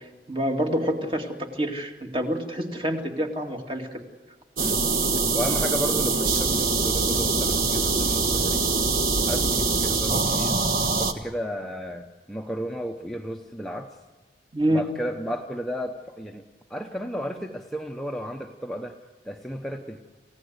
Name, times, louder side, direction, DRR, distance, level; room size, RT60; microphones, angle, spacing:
voice 1, 0.0-4.0 14.5-14.8, equal, 30° right, 3 dB, 2.4 m, -27 dB
sound 1, 4.6-11.1, right 3 dB, 50° right, 1.5 m, -23 dB
voice 2, 5.3-8.6 9.3-10.6 11.0-14.0 14.7-16.4 16.7-19.0 19.2-20.0, equal, ahead, 2 dB, 0.9 m, -33 dB
29.0 x 16.0 x 8.1 m, 1.3 s
head